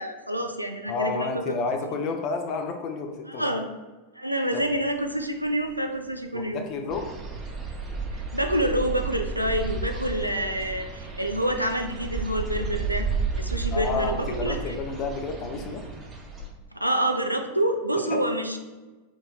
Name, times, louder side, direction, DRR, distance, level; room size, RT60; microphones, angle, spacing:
voice 1, 0.0-1.6 3.3-3.6 4.1-6.7 8.1-13.1 13.4-14.8 16.7-18.6, right 1 dB, 90° right, 5 dB, 0.3 m, -27 dB
voice 2, 0.9-3.5 4.5-4.6 6.3-7.0 13.7-15.8 18.1-18.2, left 4 dB, 40° left, 5 dB, 0.5 m, -30 dB
sound 1, 4.6-16.5, left 5 dB, 60° left, 0.9 m, -47 dB
sound 2, 6.9-16.5, right 4 dB, 25° right, 0.6 m, -32 dB
4.5 x 2.6 x 2.3 m, 1.2 s
figure-of-eight pair, 90°, 0 cm